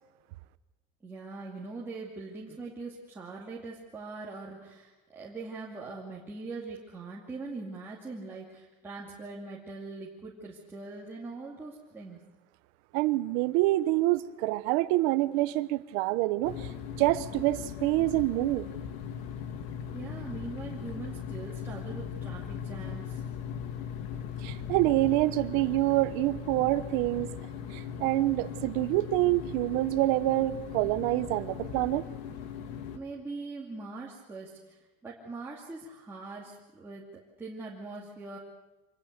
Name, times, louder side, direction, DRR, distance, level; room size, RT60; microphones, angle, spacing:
voice 1, 1.0-12.2 19.9-23.2 32.9-37.1 37.4-38.4, right 3 dB, 10° right, -5 dB, 2.4 m, -42 dB
voice 2, 12.9-16.7 17.0-18.7 24.4-27.3 27.7-32.0, right 18 dB, 65° right, 14 dB, 1.0 m, -26 dB
sound 1, 16.4-33.0, left 8 dB, 70° left, 2.1 m, -39 dB
25.5 x 20.0 x 6.7 m, 1.1 s
cardioid pair, 170°, 20 cm